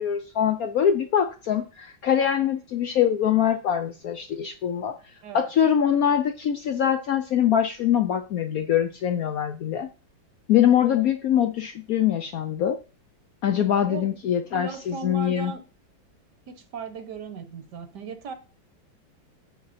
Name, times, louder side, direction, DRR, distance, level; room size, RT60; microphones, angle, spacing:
voice 1, 0.0-4.9 5.3-9.9 10.5-12.8 13.4-15.5, left 9 dB, 70° left, 0.9 m, -23 dB
voice 2, 13.8-14.2 14.5-15.6 16.5-18.3, right 5 dB, 65° right, 1.6 m, -37 dB
8.1 x 6.4 x 4.2 m
omnidirectional pair, 2.1 m